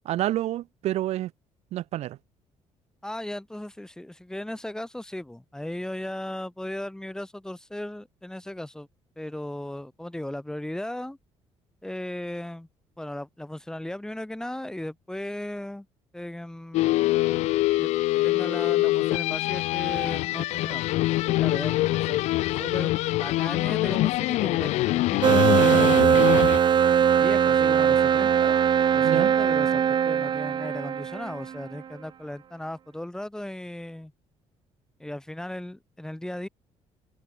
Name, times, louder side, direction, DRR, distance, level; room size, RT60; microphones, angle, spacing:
voice 1, 0.0-1.3 1.7-2.2 29.0-29.3, right 14 dB, 70° right, 1.2 m, -28 dB
voice 2, 3.0-8.9 9.2-11.2 11.8-12.7 13.0-15.9 16.1-17.0 17.8-20.8 21.2-22.3 22.5-26.6 27.2-28.6 28.9-34.1 35.0-36.5, left 1 dB, 5° left, 5.3 m, -36 dB
sound 1, 16.7-26.6, left 18 dB, 80° left, 0.4 m, -24 dB
sound 2, 25.2-31.6, right 8 dB, 40° right, 1.0 m, -21 dB
cardioid pair, 125°, 12 cm